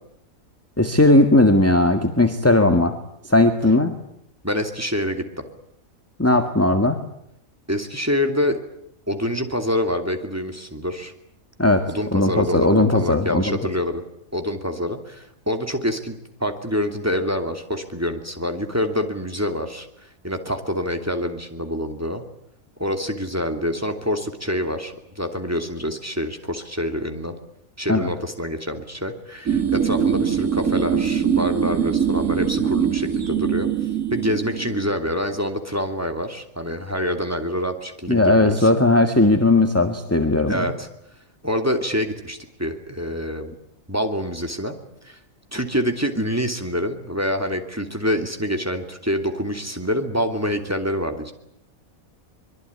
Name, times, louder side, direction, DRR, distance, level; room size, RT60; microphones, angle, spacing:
voice 1, 0.8-3.0 3.2-3.9 6.2-7.0 11.6-11.8 12.1-13.6 27.9-28.1 38.1-40.7, left 2 dB, 10° left, 6 dB, 1.7 m, -17 dB
voice 2, 4.4-5.2 7.7-8.6 9.1-11.1 11.8-14.0 14.3-22.2 22.8-27.3 27.8-33.7 34.1-38.7 40.5-40.9 41.4-43.5 43.9-44.7 45.0-45.2 45.5-51.3, equal, 10° right, 5 dB, 2.8 m, -26 dB
sound 1, 29.5-34.9, right 8 dB, 80° right, 2.8 m, -22 dB
24.5 x 22.5 x 9.7 m, 0.74 s
omnidirectional pair, 1.4 m